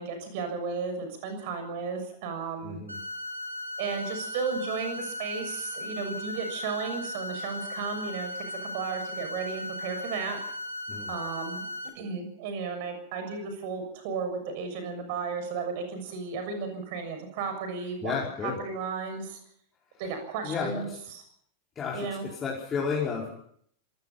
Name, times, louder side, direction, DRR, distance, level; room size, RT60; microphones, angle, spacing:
voice 1, 0.0-2.8 3.8-10.4 11.1-11.6 11.9-18.1 18.4-19.4 20.0-21.2 21.9-22.2, right 5 dB, 50° right, 7 dB, 6.7 m, -34 dB
voice 2, 2.6-3.0 10.9-11.1 18.0-18.6 20.4-21.0 21.7-23.3, left 5 dB, 20° left, -4 dB, 5.0 m, -32 dB
sound 1, 2.9-11.9, left 1 dB, 85° right, 4.6 m, -37 dB
26.5 x 17.5 x 5.8 m, 0.66 s
figure-of-eight pair, 90°, 0 cm